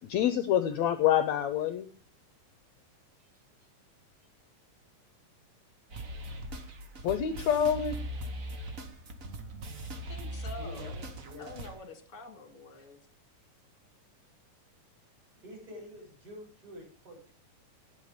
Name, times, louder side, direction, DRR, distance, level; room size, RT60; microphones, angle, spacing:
voice 1, 0.1-1.9 7.0-8.0, left 10 dB, 70° left, 10 dB, 1.8 m, -26 dB
sound 1, 5.9-11.8, right 1 dB, 90° right, 0.7 m, -40 dB
voice 2, 10.0-10.9 11.4-13.0, left 2 dB, 30° left, 6 dB, 2.3 m, -46 dB
voice 3, 10.6-11.6 12.8-12.9 15.4-17.3, left 1 dB, 30° right, -2 dB, 7.9 m, -48 dB
18.0 x 7.5 x 5.1 m, 0.40 s
omnidirectional pair, 3.8 m